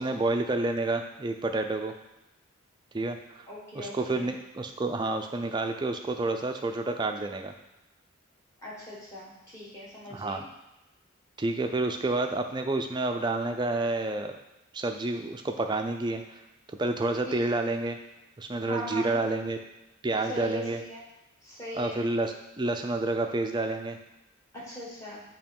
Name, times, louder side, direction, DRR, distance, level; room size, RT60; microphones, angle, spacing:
voice 1, 0.0-1.9 2.9-3.5 3.7-7.5 10.1-10.4 11.4-14.4 14.7-16.4 16.8-18.0 18.4-19.6 20.0-20.8 21.7-24.0, right 2 dB, 20° right, 5 dB, 0.4 m, -29 dB
voice 2, 3.5-4.3 8.6-10.5 17.2-17.4 18.6-19.2 20.3-21.0 21.4-22.0 24.5-25.2, equal, 15° left, -6 dB, 1.6 m, -40 dB
7.0 x 2.9 x 5.4 m, 0.97 s
head